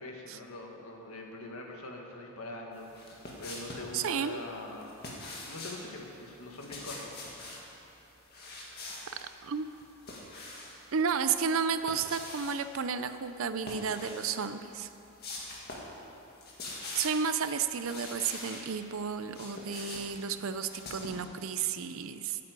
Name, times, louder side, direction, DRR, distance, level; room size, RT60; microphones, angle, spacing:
voice 1, 0.0-5.0 5.5-7.2 8.5-8.7, left 2 dB, 75° left, 1 dB, 1.6 m, -43 dB
sound 1, 2.9-3.9 4.8-5.8 6.5-7.6 8.3-9.2 9.7-10.8 11.6-12.6 13.6-14.3 14.7-14.8 15.2-16.0 16.2-17.3 17.8-18.7 19.1-21.2, left 2 dB, 45° left, 1.9 m, -43 dB
voice 2, 3.9-4.4 9.4-9.7 10.9-14.9 16.9-22.4, right 6 dB, 65° right, 10 dB, 0.5 m, -32 dB
9.2 x 8.5 x 8.2 m, 3.0 s
head